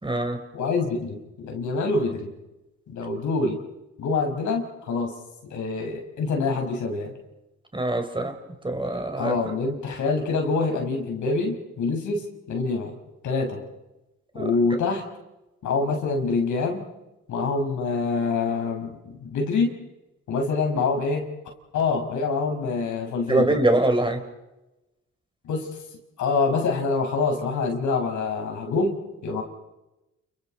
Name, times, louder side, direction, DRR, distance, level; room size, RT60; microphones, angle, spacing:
voice 1, 0.0-0.4 7.7-8.3 8.6-9.3 14.3-14.5 23.3-24.2, right 1 dB, 15° right, 5 dB, 4.2 m, -23 dB
voice 2, 0.5-2.3 2.9-3.6 4.0-5.1 5.5-7.1 9.2-12.9 13.2-13.6 14.3-15.0 15.6-16.9 17.3-19.7 20.3-21.2 21.7-23.6 25.4-25.7 26.2-29.0 29.2-29.4, left 4 dB, 75° left, 3 dB, 5.5 m, -25 dB
30.0 x 29.5 x 4.4 m, 0.99 s
cardioid pair, 90°, 30 cm